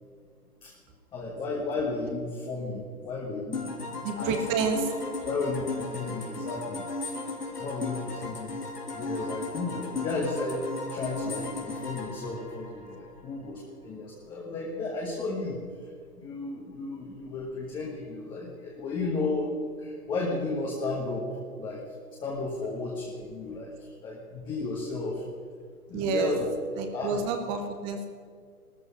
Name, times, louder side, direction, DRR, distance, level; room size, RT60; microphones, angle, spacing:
voice 1, 1.1-3.7 4.2-4.3 5.2-6.8 7.6-8.6 8.9-10.7 10.9-15.6 16.2-19.5 19.8-21.3 21.6-21.8 22.2-23.7 24.0-25.2 25.9-26.4 26.9-27.2, left 3 dB, 10° left, -3 dB, 1.3 m, -33 dB
sound 1, 3.5-13.2, left 3 dB, 85° left, 3.7 m, -36 dB
voice 2, 4.0-4.9 6.0-6.1 25.9-26.3 26.8-28.1, right 5 dB, 10° right, 6 dB, 0.8 m, -29 dB
17.0 x 13.5 x 5.7 m, 2.1 s
hypercardioid pair, 145°, 46 cm